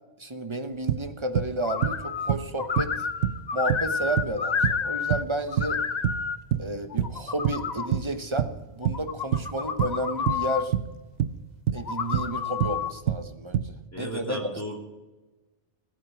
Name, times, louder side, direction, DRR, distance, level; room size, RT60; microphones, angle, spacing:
voice 1, 0.2-3.1 3.5-5.8 6.6-10.7 11.7-14.6, right 1 dB, 25° right, 7 dB, 1.0 m, -32 dB
sound 1, 0.9-7.2 7.5-13.8, right 10 dB, 75° right, 1.0 m, -27 dB
sound 2, 1.6-2.3 2.6-5.2 5.5-6.4 6.9-7.9 8.8-10.6 11.8-12.9, left 6 dB, 45° left, 0.8 m, -30 dB
voice 2, 13.9-14.8, equal, 15° left, -1 dB, 3.0 m, -35 dB
17.5 x 8.8 x 5.9 m, 1.1 s
omnidirectional pair, 1.2 m